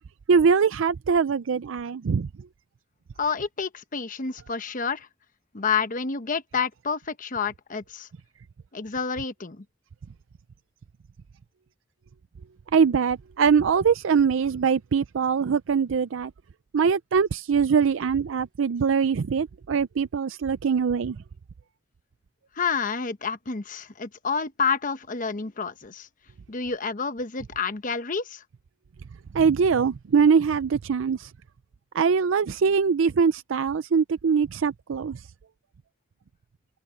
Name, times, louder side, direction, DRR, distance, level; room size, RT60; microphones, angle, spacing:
voice 1, 0.3-2.3 12.7-16.3 16.7-21.2 29.3-31.3 31.9-35.2, right 6 dB, 80° right, 0.4 m, -22 dB
voice 2, 3.2-5.1 5.5-8.1 8.7-9.6 22.5-26.1 26.5-28.4, left 5 dB, 45° left, 1.0 m, -29 dB
head